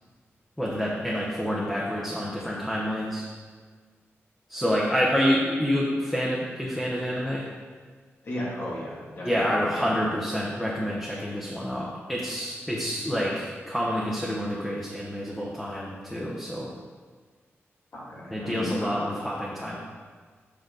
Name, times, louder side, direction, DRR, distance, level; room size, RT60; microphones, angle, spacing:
voice 1, 0.6-3.2 4.5-7.5 9.2-16.7 18.3-19.8, equal, 5° left, -5 dB, 1.1 m, -28 dB
voice 2, 8.2-9.9 17.9-18.9, left 1 dB, 60° left, -6 dB, 2.5 m, -35 dB
7.9 x 5.9 x 4.0 m, 1.5 s
wide cardioid pair, 95°, 5 cm